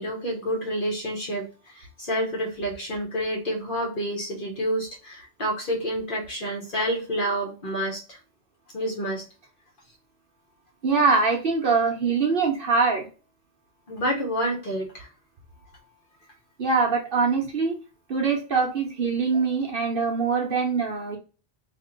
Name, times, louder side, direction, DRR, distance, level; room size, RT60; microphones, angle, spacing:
voice 1, 0.0-8.2 8.7-9.2 13.9-15.1, equal, 45° left, -1 dB, 1.0 m, -29 dB
voice 2, 10.8-13.1 16.6-17.8 18.1-21.2, right 4 dB, 50° right, 0 dB, 0.8 m, -23 dB
2.9 x 2.6 x 3.7 m, 0.33 s
omnidirectional pair, 1.3 m